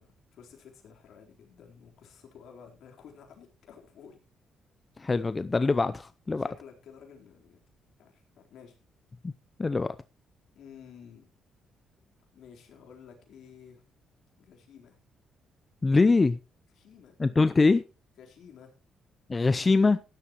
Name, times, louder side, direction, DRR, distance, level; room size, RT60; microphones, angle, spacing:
voice 1, 0.0-4.2 6.3-7.6 8.0-8.8 10.5-11.3 12.3-13.8 14.4-15.0 16.7-17.1 18.2-18.7, left 7 dB, 75° left, 3.9 m, -52 dB
voice 2, 5.0-6.5 9.2-9.3 9.6-9.9 15.8-16.4 17.2-17.8 19.3-20.0, left 3 dB, 25° left, 0.6 m, -23 dB
16.0 x 11.0 x 3.0 m
cardioid pair, 90°, 0 cm